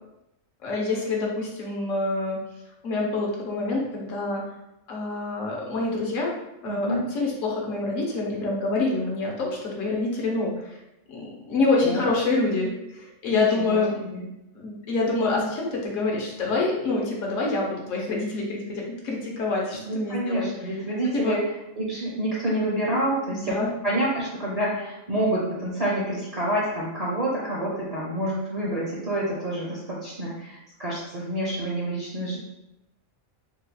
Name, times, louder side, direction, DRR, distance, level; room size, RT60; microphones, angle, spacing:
voice 1, 0.6-2.4 2.8-4.4 4.9-6.3 6.6-10.8 11.1-14.0 14.5-20.5 21.1-21.4 23.3-23.7, left 3 dB, 70° left, -2 dB, 1.1 m, -26 dB
voice 2, 6.6-7.0 11.8-12.1 13.3-14.3 19.9-21.4 21.8-23.6 23.8-32.4, right 1 dB, 45° right, -6 dB, 0.5 m, -28 dB
4.0 x 2.8 x 2.2 m, 0.87 s
omnidirectional pair, 1.4 m